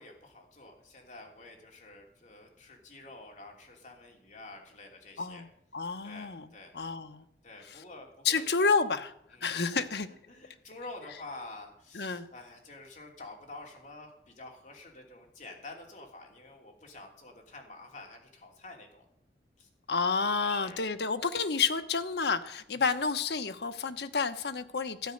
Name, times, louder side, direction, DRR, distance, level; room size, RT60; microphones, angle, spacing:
voice 1, 0.0-5.4 6.0-6.7 7.4-8.5 9.3-9.9 10.3-19.1 19.6-19.7 20.4-20.8 22.7-22.9, left 2 dB, 45° left, 1 dB, 3.0 m, -48 dB
voice 2, 5.7-6.5 6.7-7.3 8.2-9.1 9.4-10.1 11.9-12.3 19.9-25.1, left 4 dB, 70° left, 9 dB, 1.0 m, -30 dB
13.0 x 9.5 x 6.5 m, 0.71 s
head